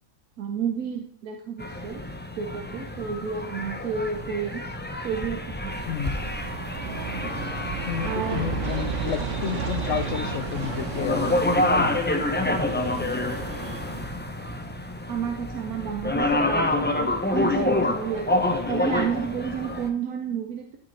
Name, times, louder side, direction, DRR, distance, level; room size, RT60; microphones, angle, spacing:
voice 1, 0.4-2.0 2.3-4.6 5.0-5.9 7.2-7.3 8.0-8.5 15.1-16.9 17.3-20.8, right 7 dB, 85° right, 3 dB, 1.3 m, -31 dB
sound 1, 1.6-19.9, left 1 dB, 15° left, 0.4 m, -28 dB
voice 2, 5.9-6.2 7.8-12.1 12.4-13.5, left 10 dB, 65° left, 12 dB, 0.9 m, -32 dB
Aircraft, 6.0-14.0, right 5 dB, 60° right, 1.4 m, -33 dB
12.5 x 6.4 x 3.3 m, 0.62 s
omnidirectional pair, 1.5 m